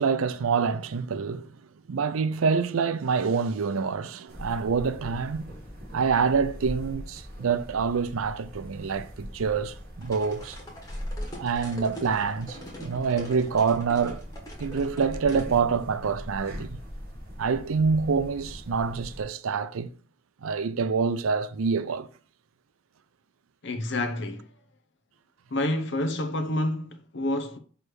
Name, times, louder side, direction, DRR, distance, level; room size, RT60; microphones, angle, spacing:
voice 1, 0.0-1.5 1.9-5.5 5.9-10.6 11.4-14.2 14.6-16.8 17.4-19.9 20.4-22.1, right 5 dB, 80° right, 0.5 m, -26 dB
sound 1, 4.3-19.2, equal, 50° right, 2.8 m, -41 dB
sound 2, 10.0-15.5, equal, 15° left, 1.8 m, -43 dB
voice 2, 23.6-24.5 25.5-27.6, left 1 dB, 55° left, 0.8 m, -28 dB
6.3 x 3.3 x 4.7 m
head